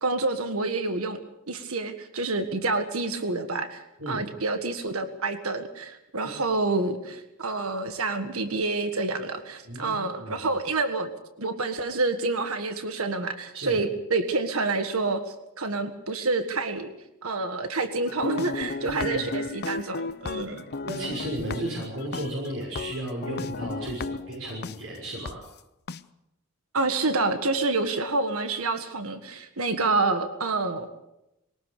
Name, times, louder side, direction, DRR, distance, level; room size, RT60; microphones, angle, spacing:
voice 1, 0.0-1.2 1.5-11.1 11.4-15.2 15.6-16.9 17.2-20.6 26.7-30.9, right 3 dB, 90° right, 8 dB, 1.7 m, -28 dB
voice 2, 9.6-10.4 13.5-13.8 18.8-19.2 20.4-20.5 20.8-25.4, right 1 dB, 70° right, -2 dB, 6.2 m, -34 dB
sound 1, 18.0-24.7 25.2-25.3 25.9-26.0, left 3 dB, 50° left, 0.7 m, -34 dB
22.0 x 19.0 x 6.8 m, 0.89 s
head